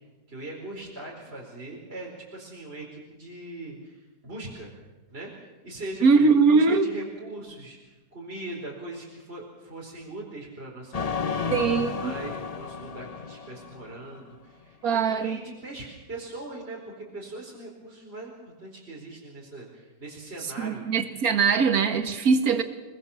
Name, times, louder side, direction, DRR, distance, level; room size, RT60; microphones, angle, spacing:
voice 1, 0.3-4.7 5.1-21.0, right 2 dB, 35° right, -3 dB, 4.7 m, -40 dB
voice 2, 6.0-6.9 11.5-11.9 14.8-15.4 20.6-22.6, right 5 dB, 55° right, 7 dB, 2.1 m, -21 dB
sound 1, 10.9-14.3, left 6 dB, 65° left, 0.3 m, -32 dB
28.0 x 20.5 x 7.3 m, 1.2 s
omnidirectional pair, 1.9 m